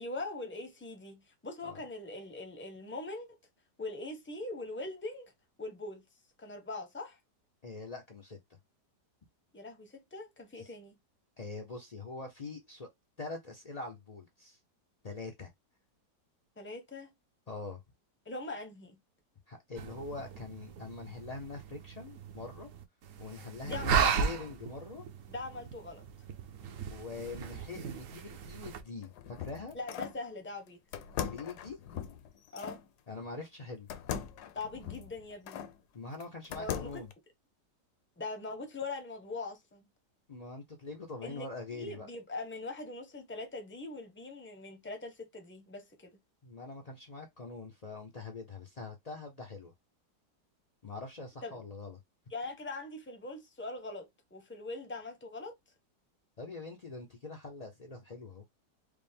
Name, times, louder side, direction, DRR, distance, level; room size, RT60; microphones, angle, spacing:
voice 1, 0.0-3.4 3.8-5.3 5.6-6.0 6.4-7.2 9.5-11.0 16.6-17.1 18.3-19.0 23.6-24.3 25.3-26.1 29.7-30.8 32.5-32.8 34.5-35.6 36.6-37.0 38.2-39.9 41.2-41.5 41.7-46.1 51.4-51.6 52.3-55.5, left 2 dB, 15° left, 0.4 m, -42 dB
voice 2, 7.6-8.4 10.6-10.7 11.4-12.9 13.2-14.6 15.0-15.5 17.5-17.8 19.5-22.7 23.2-25.1 26.9-29.8 31.2-31.8 33.1-33.9 35.9-37.1 40.3-42.1 46.4-49.7 50.8-52.0 56.4-58.4, left 3 dB, 85° left, 0.3 m, -43 dB
sound 1, 19.8-28.8, right 7 dB, 65° right, 0.9 m, -36 dB
sound 2, 28.9-30.2 30.9-32.8 33.9-35.7 36.2-37.1, left 9 dB, 70° left, 1.1 m, -40 dB
5.0 x 2.1 x 3.4 m
omnidirectional pair, 1.9 m